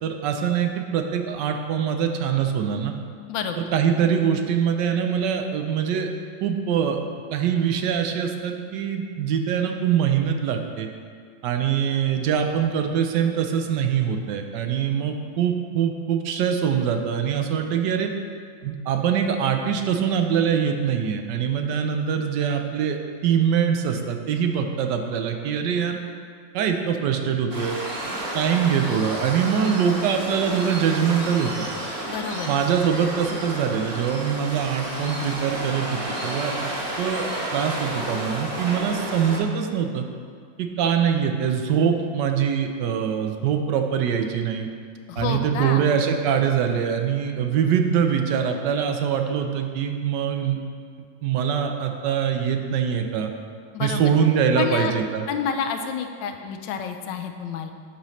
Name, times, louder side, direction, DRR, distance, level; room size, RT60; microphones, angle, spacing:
voice 1, 0.0-2.9 3.6-6.1 6.4-7.0 7.3-10.9 11.4-18.1 18.6-23.0 23.2-26.0 26.5-27.7 28.3-31.7 32.5-36.7 37.0-40.1 40.6-44.7 45.2-50.6 51.2-53.3 53.8-55.3, right 7 dB, 75° right, 5 dB, 1.2 m, -23 dB
voice 2, 3.3-3.7 32.1-32.5 45.1-45.9 53.7-54.1 54.5-54.9 55.3-57.7, left 7 dB, 80° left, 6 dB, 1.3 m, -29 dB
Waves surf, 27.5-39.4, right 1 dB, 35° right, 1.0 m, -31 dB
8.8 x 3.1 x 5.6 m, 2.1 s
omnidirectional pair, 2.0 m